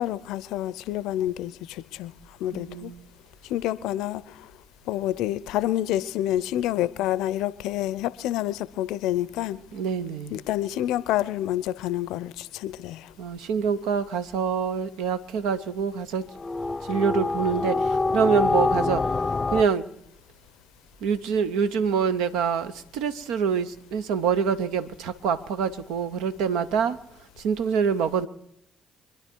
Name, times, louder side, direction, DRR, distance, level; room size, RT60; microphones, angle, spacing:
voice 1, 0.0-2.1 2.4-2.9 3.5-4.2 4.9-9.6 10.3-13.1, left 13 dB, 75° left, 0.5 m, -28 dB
voice 2, 2.5-3.0 9.7-10.4 13.2-16.2 16.9-19.0 19.5-19.8 21.0-27.0 27.4-28.3, right 6 dB, 75° right, 0.7 m, -25 dB
sound 1, 16.4-19.6, left 3 dB, 35° left, 0.6 m, -25 dB
25.0 x 10.5 x 4.6 m
hypercardioid pair, 45°, 0 cm